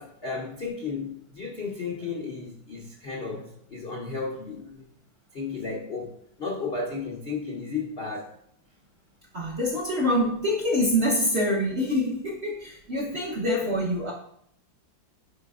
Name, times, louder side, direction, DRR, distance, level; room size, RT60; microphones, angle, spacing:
voice 1, 0.0-4.8 5.3-8.3 13.1-13.2, left 4 dB, 60° left, -2 dB, 0.6 m, -34 dB
voice 2, 9.3-14.1, equal, 50° right, -3 dB, 0.8 m, -25 dB
9.9 x 4.1 x 2.4 m, 0.70 s
omnidirectional pair, 2.1 m